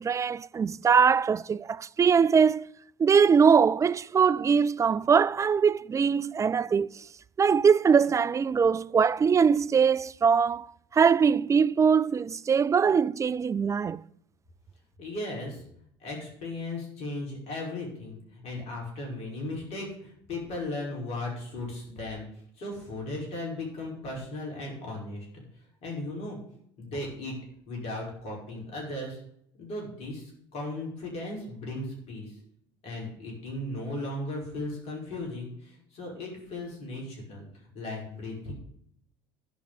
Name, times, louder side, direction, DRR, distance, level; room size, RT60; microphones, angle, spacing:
voice 1, 0.0-2.7 3.0-7.0 7.4-10.7 10.9-14.0, right 6 dB, 25° right, 0.4 m, -22 dB
voice 2, 15.0-15.6 16.0-22.3 22.6-25.4 25.8-26.4 26.8-27.3 27.7-29.2 29.6-32.4 32.8-38.5, left 2 dB, 60° left, 5.7 m, -36 dB
11.5 x 5.6 x 8.4 m
hypercardioid pair, 70°, 12 cm